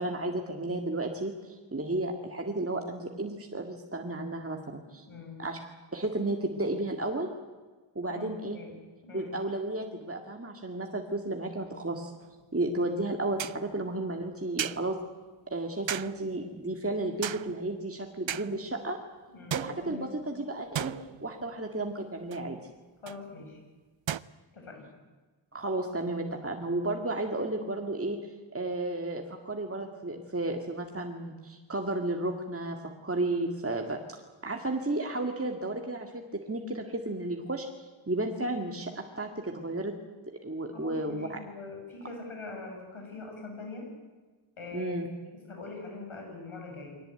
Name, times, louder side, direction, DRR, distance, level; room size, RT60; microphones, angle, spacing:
voice 1, 0.0-5.1 5.4-5.6 5.9-7.3 8.0-8.6 9.1-12.1 12.5-15.0 15.5-19.0 19.5-20.9 21.2-22.6 25.5-34.2 34.4-37.7 38.1-39.9 40.4-41.4 44.7-45.1, right 2 dB, 30° right, 3 dB, 2.1 m, -33 dB
voice 2, 5.0-5.4 8.1-8.8 9.0-9.4 19.3-20.1 23.0-23.6 24.5-24.9 40.7-43.9 44.6-47.0, left 3 dB, 80° left, 2 dB, 7.0 m, -43 dB
sound 1, 12.2-12.3 13.4-13.7 14.6-15.0 15.9-16.4 17.2-17.7 18.3-18.7 19.5-20.3 20.7-21.6 22.3-22.5 23.1-23.2 24.1-24.2, right 10 dB, 65° right, 0.7 m, -36 dB
22.5 x 18.0 x 9.1 m, 1.3 s
wide cardioid pair, 65°, 49 cm